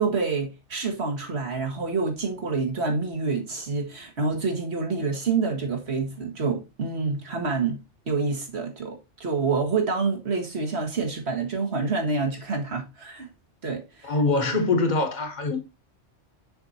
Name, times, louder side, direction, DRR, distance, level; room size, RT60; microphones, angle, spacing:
voice 1, 0.0-7.8 8.1-13.3 13.6-14.2, right 4 dB, 65° right, 1.9 m, -27 dB
voice 2, 14.0-15.6, left 3 dB, 40° left, 1.3 m, -23 dB
6.9 x 5.3 x 2.8 m
omnidirectional pair, 1.2 m